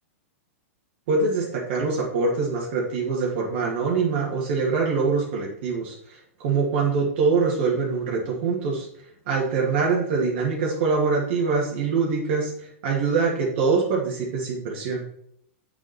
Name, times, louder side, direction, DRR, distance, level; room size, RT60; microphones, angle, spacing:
voice 1, 1.1-8.9 9.3-15.0, right 4 dB, 55° right, -3 dB, 2.5 m, -24 dB
7.0 x 7.0 x 4.4 m, 0.68 s
hypercardioid pair, 120°, 7 cm